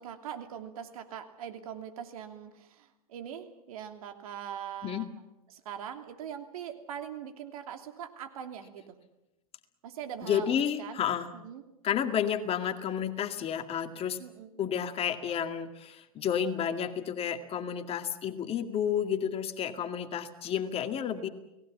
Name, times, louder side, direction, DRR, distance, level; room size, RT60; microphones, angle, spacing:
voice 1, 0.0-5.1 5.5-9.0 9.8-11.0 11.3-11.7 14.2-14.6, right 9 dB, 70° right, 6 dB, 3.0 m, -42 dB
voice 2, 10.2-11.3 11.8-14.2 14.6-21.3, left 8 dB, 30° left, 7 dB, 2.1 m, -31 dB
30.0 x 19.0 x 7.3 m, 0.94 s
hypercardioid pair, 105°, 19 cm